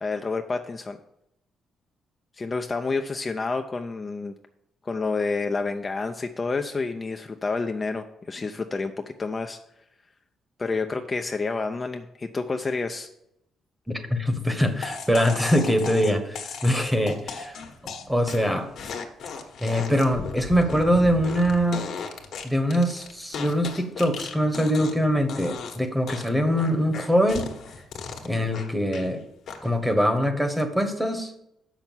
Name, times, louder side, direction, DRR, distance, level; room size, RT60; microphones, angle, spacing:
voice 1, 0.0-1.0 2.4-4.3 4.8-9.6 10.6-13.1, left 4 dB, 30° left, 5 dB, 0.6 m, -29 dB
voice 2, 13.9-19.0 19.6-21.9 22.4-27.4 28.2-29.2 29.6-31.3, equal, 5° right, 7 dB, 1.2 m, -23 dB
sound 1, 14.8-25.0 25.3-25.8 26.1-29.1 29.5-29.9, left 5 dB, 65° left, 1.4 m, -36 dB
6.7 x 6.0 x 7.3 m, 0.80 s
cardioid pair, 90°, 0 cm